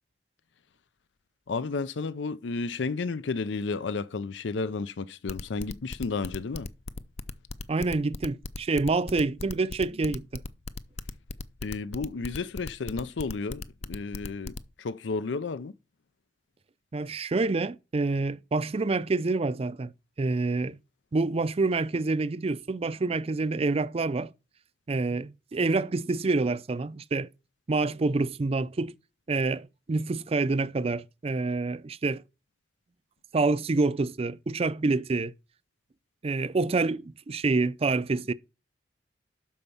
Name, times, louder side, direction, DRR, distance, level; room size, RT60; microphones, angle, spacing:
voice 1, 1.5-6.7 11.6-15.7, left 4 dB, 90° left, 0.5 m, -32 dB
sound 1, 5.3-14.6, left 3 dB, 35° left, 0.5 m, -37 dB
voice 2, 7.7-10.4 16.9-19.9 20.2-20.8 21.1-24.3 24.9-27.3 27.7-28.9 29.3-32.2 33.3-35.3 36.2-38.3, right 3 dB, 35° right, 0.4 m, -27 dB
12.0 x 4.6 x 5.5 m
head